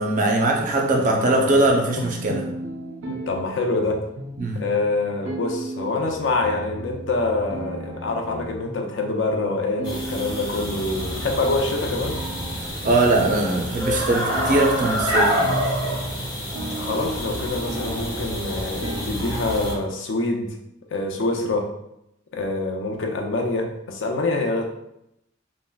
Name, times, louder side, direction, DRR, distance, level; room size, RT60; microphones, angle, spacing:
voice 1, 0.0-2.4 4.4-4.6 12.8-15.5, right 2 dB, 40° right, 1 dB, 0.4 m, -21 dB
voice 2, 1.0-1.6 3.1-4.0 4.6-12.2 16.8-20.5 20.9-21.6 22.3-24.6, left 2 dB, 70° left, 3 dB, 0.5 m, -25 dB
sound 1, 1.9-19.9, right 1 dB, 90° right, 0.6 m, -36 dB
sound 2, 9.8-19.7, equal, 20° left, 0.6 m, -27 dB
3.5 x 2.1 x 2.2 m, 0.81 s
head